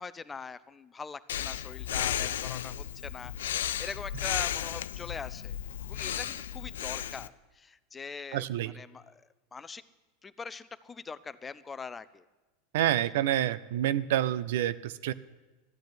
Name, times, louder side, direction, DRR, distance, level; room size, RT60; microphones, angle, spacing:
voice 1, 0.0-5.6 5.9-8.5 8.7-9.8 10.2-12.2, left 5 dB, 20° left, 16 dB, 0.6 m, -42 dB
Breathing, 1.3-7.3, left 10 dB, 75° left, 0.4 m, -34 dB
voice 2, 8.3-8.7 12.7-15.1, right 12 dB, 70° right, 17 dB, 0.6 m, -28 dB
13.0 x 9.1 x 9.4 m, 1.2 s
hypercardioid pair, 95°, 0 cm